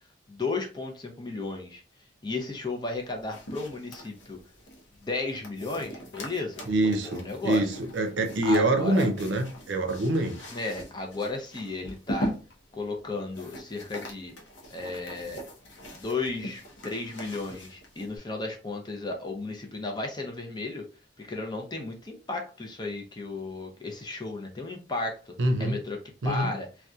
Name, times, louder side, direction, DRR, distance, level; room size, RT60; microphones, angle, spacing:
voice 1, 0.3-1.8 2.2-4.4 5.0-7.7 8.4-9.1 10.5-12.3 12.7-14.3 14.7-15.4 15.9-20.9 21.2-25.3 25.6-26.0 26.2-26.7, left 3 dB, 25° left, 0.5 m, -34 dB
sound 1, 2.8-18.2, equal, 85° left, 0.7 m, -41 dB
voice 2, 6.7-10.4 25.4-25.8 26.2-26.5, right 1 dB, 80° right, 0.6 m, -25 dB
2.7 x 2.2 x 2.3 m
head